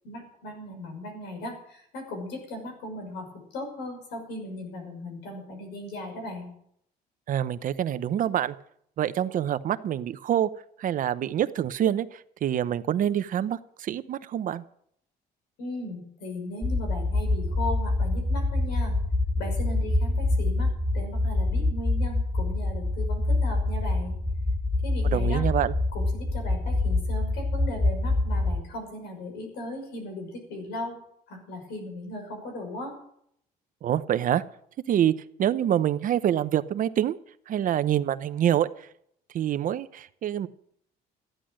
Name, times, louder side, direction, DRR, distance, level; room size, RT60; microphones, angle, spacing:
voice 1, 0.0-6.5 15.6-18.9 19.3-24.2 24.8-25.4 25.9-31.0 31.3-32.9, left 1 dB, 85° left, 4 dB, 5.8 m, -37 dB
voice 2, 7.3-8.5 9.0-10.5 10.8-14.6 25.1-25.7 33.8-34.4 34.9-35.1 35.4-37.2 37.5-38.9 39.3-40.5, right 10 dB, 55° right, 14 dB, 0.8 m, -26 dB
sound 1, 16.6-28.6, left 2 dB, 5° left, 0.8 m, -26 dB
14.0 x 10.5 x 6.3 m, 0.68 s
cardioid pair, 110°, 17 cm